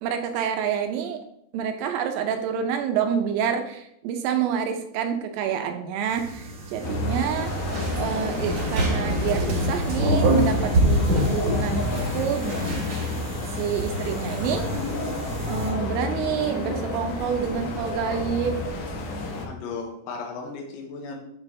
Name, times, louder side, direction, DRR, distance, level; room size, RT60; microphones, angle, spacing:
voice 1, 0.0-1.2 1.5-7.5 8.0-11.9 12.1-12.6 13.6-14.7 15.5-18.6, right 8 dB, 80° right, 5 dB, 3.2 m, -27 dB
sound 1, 6.1-15.7, right 1 dB, 50° right, 2.1 m, -26 dB
sound 2, 6.8-19.5, left 3 dB, 70° left, 2.4 m, -30 dB
voice 2, 19.5-21.2, left 4 dB, 85° left, 1 dB, 3.9 m, -35 dB
8.9 x 5.8 x 3.3 m, 0.76 s
omnidirectional pair, 6.0 m